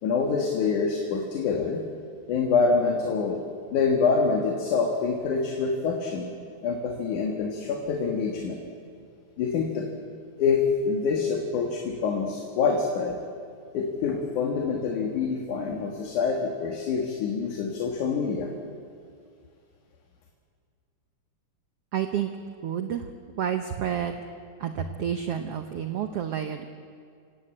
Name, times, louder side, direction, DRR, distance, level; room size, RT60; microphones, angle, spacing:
voice 1, 0.0-1.8 2.3-3.4 3.7-6.3 6.6-8.6 9.4-9.9 10.4-13.2 13.7-18.5, left 5 dB, 65° left, 1 dB, 3.0 m, -26 dB
voice 2, 21.9-22.3 22.6-23.1 23.4-24.2 24.6-26.7, right 9 dB, 85° right, 7 dB, 1.3 m, -29 dB
28.0 x 16.5 x 8.8 m, 2.3 s
omnidirectional pair, 4.1 m